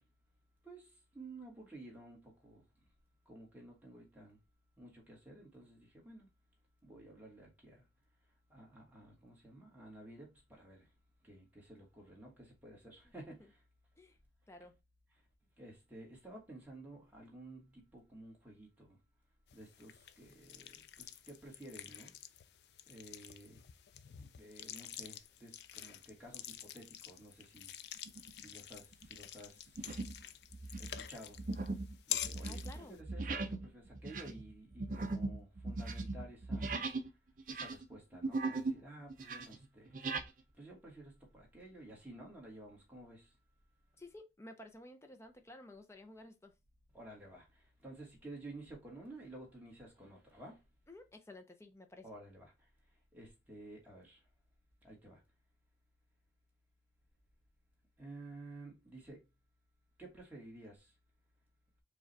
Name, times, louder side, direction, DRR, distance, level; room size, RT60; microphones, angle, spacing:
voice 1, 0.6-2.6 3.2-4.4 4.8-6.3 6.8-7.8 8.5-10.9 11.2-13.6 15.6-19.0 19.5-22.1 22.9-23.6 24.2-27.7 28.3-29.7 30.8-31.4 32.1-36.7 37.5-40.0 40.6-43.3 46.9-50.6 52.0-52.5 53.1-54.2 54.8-55.2 58.0-59.2 60.0-60.9, right 1 dB, 10° right, 1.4 m, -53 dB
sound 1, 19.5-33.0, left 11 dB, 65° left, 0.3 m, -47 dB
sound 2, 28.1-28.4 28.9-29.2 29.8-30.2 30.5-37.1 37.4-38.8 39.1-40.3, right 3 dB, 45° right, 0.5 m, -39 dB
voice 2, 32.4-33.0 44.0-46.5 50.9-52.0, left 1 dB, 15° left, 0.6 m, -53 dB
4.8 x 2.3 x 4.0 m
head